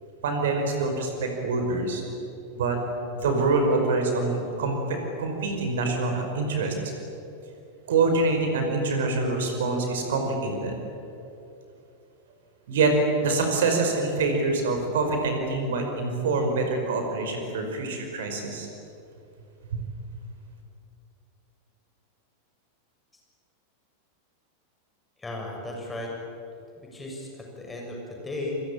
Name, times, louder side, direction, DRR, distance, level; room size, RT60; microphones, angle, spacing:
voice 1, 0.2-2.0 2.5-2.8 3.1-6.7 7.9-10.8 12.7-12.9 13.2-18.7 19.7-19.8, right 3 dB, 60° right, 4 dB, 5.3 m, -25 dB
voice 2, 25.2-26.1 26.9-28.6, left 2 dB, 10° left, 0 dB, 6.9 m, -35 dB
29.0 x 23.0 x 8.9 m, 2.7 s
figure-of-eight pair, 90°, 0 cm